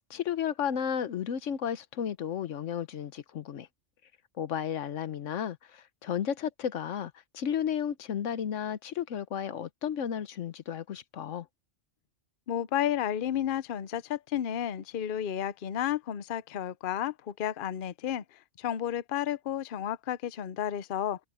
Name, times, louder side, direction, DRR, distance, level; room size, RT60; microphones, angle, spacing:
voice 1, 0.0-3.7 4.4-11.5, left 8 dB, 85° left, 1.2 m, -33 dB
voice 2, 12.5-21.2, left 10 dB, 55° left, 0.8 m, -32 dB
omnidirectional pair, 1.2 m